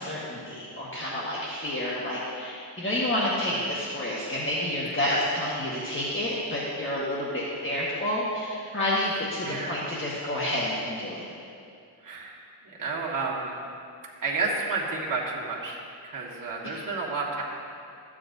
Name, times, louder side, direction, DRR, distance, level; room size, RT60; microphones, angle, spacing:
voice 1, 0.0-11.2, left 1 dB, 30° left, -7 dB, 1.4 m, -29 dB
voice 2, 7.3-7.7 9.4-9.8 12.0-12.4 12.8-13.6 14.2-17.4, right 3 dB, 45° right, -4 dB, 1.7 m, -31 dB
13.0 x 8.7 x 2.7 m, 2.5 s
cardioid pair, 95°, 43 cm